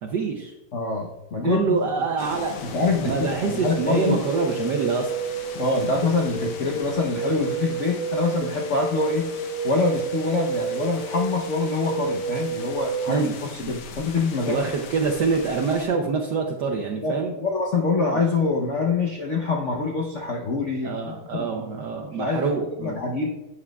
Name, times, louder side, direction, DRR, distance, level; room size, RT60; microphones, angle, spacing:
voice 1, 0.0-0.5 1.4-2.6 3.0-5.1 13.1-13.3 13.6-13.7 14.5-17.3 18.1-18.2 20.8-23.0, right 5 dB, 65° right, 2 dB, 1.2 m, -25 dB
voice 2, 0.7-1.8 2.6-4.2 5.6-9.3 9.6-14.6 17.0-21.7 22.2-22.5 22.8-23.3, left 3 dB, 70° left, 0 dB, 0.7 m, -25 dB
sound 1, 2.2-15.8, left 5 dB, 85° left, 1.8 m, -40 dB
sound 2, 3.6-13.2, right 5 dB, 85° right, 0.8 m, -30 dB
12.5 x 8.5 x 2.3 m, 0.99 s
omnidirectional pair, 2.4 m